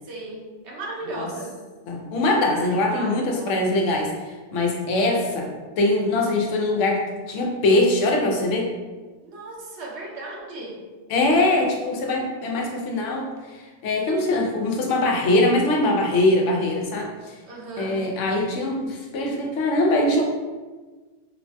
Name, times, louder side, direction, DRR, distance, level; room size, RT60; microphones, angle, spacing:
voice 1, 0.0-1.6 2.7-3.8 9.2-10.8 17.5-18.0, right 2 dB, 70° right, -2 dB, 0.9 m, -36 dB
voice 2, 1.9-4.1 4.5-5.5 5.8-7.0 7.3-8.7 11.1-13.3 13.8-17.1 17.8-20.2, left 2 dB, 85° left, 0 dB, 0.9 m, -22 dB
3.1 x 2.1 x 2.5 m, 1.3 s
omnidirectional pair, 1.2 m